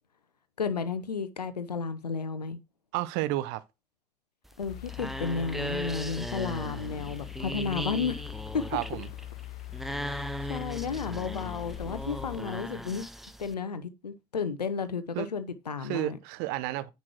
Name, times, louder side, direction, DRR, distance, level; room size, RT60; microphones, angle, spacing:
voice 1, 0.6-2.6 4.6-8.2 8.5-8.6 10.1-13.1 13.4-16.2, left 5 dB, 80° left, 0.8 m, -33 dB
voice 2, 2.9-3.6 8.7-9.1 15.1-15.3 15.8-16.9, right 16 dB, 55° right, 0.7 m, -31 dB
sound 1, 4.4-13.5, equal, ahead, 0.7 m, -38 dB
sound 2, 4.7-12.4, left 17 dB, 45° left, 0.4 m, -41 dB
9.7 x 4.2 x 4.6 m
figure-of-eight pair, 60°, 20 cm